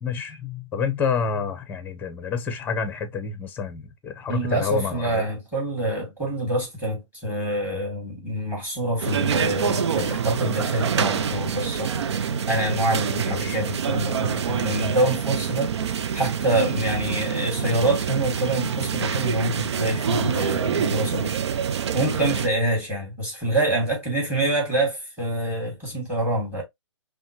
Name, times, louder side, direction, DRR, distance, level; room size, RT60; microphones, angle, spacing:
voice 1, 0.0-5.3 13.2-13.6, left 5 dB, 10° left, 0.8 m, -28 dB
voice 2, 4.3-21.4 21.9-26.6, right 1 dB, 10° right, 2.5 m, -26 dB
sound 1, 9.0-22.5, right 7 dB, 60° right, 0.5 m, -26 dB
5.5 x 2.2 x 3.1 m
hypercardioid pair, 140°, 16 cm